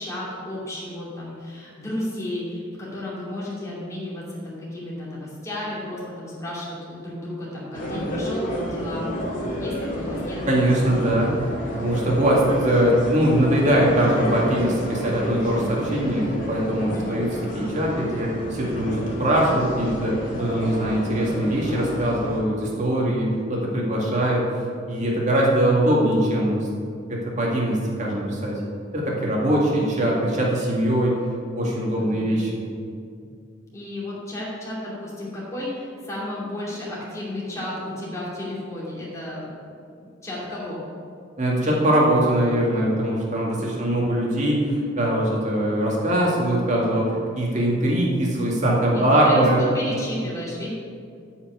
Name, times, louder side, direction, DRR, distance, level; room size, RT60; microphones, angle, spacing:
voice 1, 0.0-9.1 9.6-10.4 16.9-17.2 29.5-29.9 31.9-32.2 33.7-39.5 40.2-40.8 48.9-50.7, left 1 dB, 15° left, -7 dB, 2.7 m, -33 dB
sound 1, 7.7-22.4, equal, 45° left, 2.3 m, -30 dB
voice 2, 10.5-11.3 11.7-17.3 17.5-24.4 24.9-26.7 27.1-28.5 28.9-31.2 31.5-32.6 41.4-49.6, right 1 dB, 40° right, -3 dB, 2.2 m, -22 dB
8.5 x 5.8 x 8.1 m, 2.3 s
head